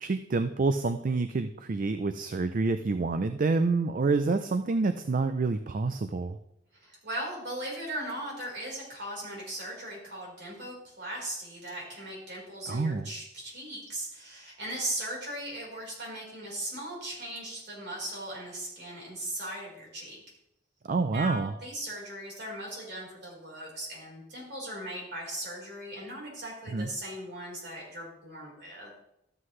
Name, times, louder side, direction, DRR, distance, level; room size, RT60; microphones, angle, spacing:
voice 1, 0.0-6.4 12.7-13.0 20.9-21.5 26.7-26.9, right 3 dB, 45° right, 10 dB, 0.4 m, -28 dB
voice 2, 6.7-20.2 21.1-28.9, right 1 dB, 65° right, -3 dB, 4.4 m, -38 dB
13.0 x 7.7 x 3.2 m, 0.80 s
head